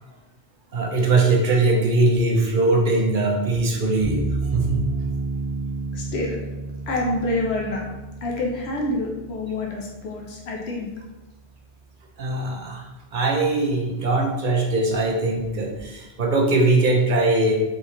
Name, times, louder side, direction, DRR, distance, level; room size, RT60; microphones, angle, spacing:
voice 1, 0.7-4.8 12.2-17.6, right 2 dB, 55° right, 0 dB, 0.8 m, -21 dB
sound 1, 4.0-11.1, right 3 dB, 60° left, 1.7 m, -31 dB
voice 2, 5.9-6.4 6.9-7.9 8.2-10.9, left 2 dB, 90° left, -1 dB, 0.9 m, -27 dB
4.0 x 3.8 x 2.9 m, 1.0 s
omnidirectional pair, 1.1 m